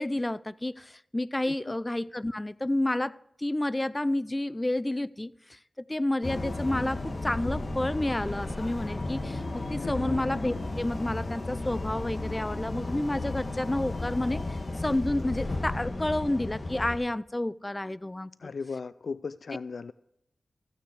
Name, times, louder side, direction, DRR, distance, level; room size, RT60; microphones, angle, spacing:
voice 1, 0.0-5.3 5.9-18.3, left 1 dB, 20° left, 0.5 m, -30 dB
sound 1, 6.2-17.0, left 2 dB, 45° left, 2.0 m, -34 dB
voice 2, 9.8-10.2 18.4-19.9, left 5 dB, 75° left, 0.3 m, -37 dB
14.5 x 9.4 x 4.8 m
cardioid pair, 55°, 0 cm